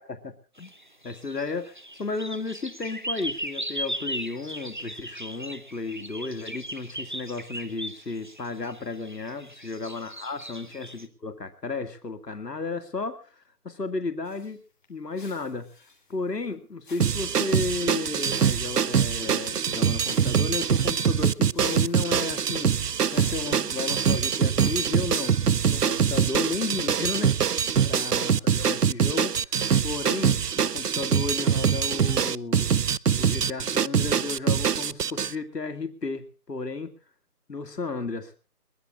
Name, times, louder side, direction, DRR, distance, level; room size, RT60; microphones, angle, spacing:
voice 1, 0.1-0.7 1.0-14.6 14.9-15.7 16.1-22.8 23.1-32.7 33.2-36.9 37.5-38.3, left 3 dB, 90° left, 9 dB, 2.3 m, -33 dB
sound 1, 0.6-11.1, right 1 dB, 30° right, 0.9 m, -37 dB
sound 2, 14.3-14.6 14.8-14.9 15.2-16.5 16.8-18.0 18.3-25.4, left 3 dB, 30° left, 3.4 m, -52 dB
sound 3, 17.0-35.3, right 7 dB, 75° right, 0.7 m, -24 dB
22.0 x 20.5 x 2.4 m, 0.36 s
figure-of-eight pair, 170°, 47 cm